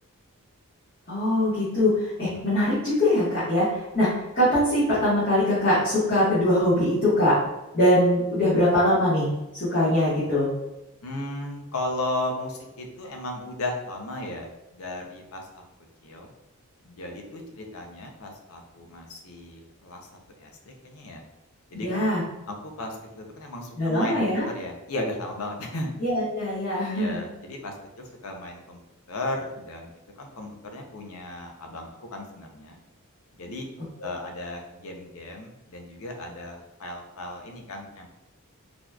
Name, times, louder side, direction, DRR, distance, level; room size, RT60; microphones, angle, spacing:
voice 1, 1.1-7.4 7.7-10.5 21.7-22.2 23.8-24.4 26.0-27.3, left 1 dB, 45° left, -13 dB, 1.4 m, -22 dB
voice 2, 11.0-15.6 16.0-16.3 16.8-21.2 21.7-22.1 22.5-25.9 26.9-28.8 29.1-29.9 30.2-32.8 33.4-33.7 34.0-38.1, left 2 dB, 75° left, 2 dB, 0.6 m, -35 dB
4.1 x 2.9 x 2.3 m, 0.95 s
head